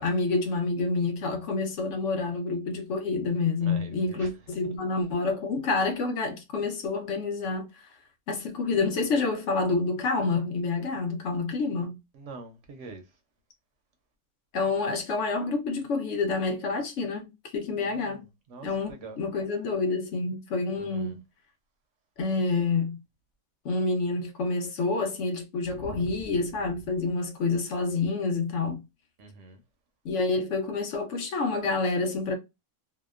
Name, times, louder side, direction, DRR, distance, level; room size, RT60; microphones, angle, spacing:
voice 1, 0.0-7.7 8.3-11.9 14.5-17.3 17.5-18.2 18.6-21.2 22.2-23.0 23.6-28.8 30.0-32.4, left 3 dB, 60° left, 1.0 m, -28 dB
voice 2, 3.6-4.3 12.1-13.0 17.7-18.2 18.5-19.2 20.7-21.2 25.7-26.2 29.2-29.6, right 3 dB, 65° right, 0.8 m, -44 dB
2.8 x 2.1 x 2.3 m
omnidirectional pair, 1.5 m